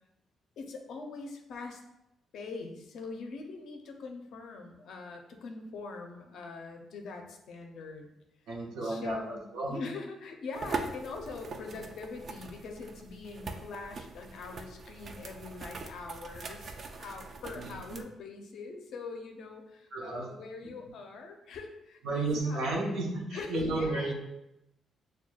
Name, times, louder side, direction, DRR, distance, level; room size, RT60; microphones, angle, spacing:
voice 1, 0.6-1.8 2.3-8.1 8.8-23.0 23.3-24.1, left 4 dB, 65° left, 3 dB, 0.5 m, -43 dB
voice 2, 8.5-9.8 17.6-18.0 19.9-20.2 22.0-24.1, right 2 dB, 85° right, -3 dB, 0.8 m, -33 dB
sound 1, 10.5-18.0, right 3 dB, 40° right, 0.3 m, -42 dB
6.2 x 2.2 x 2.3 m, 0.88 s
cardioid pair, 150°, 0 cm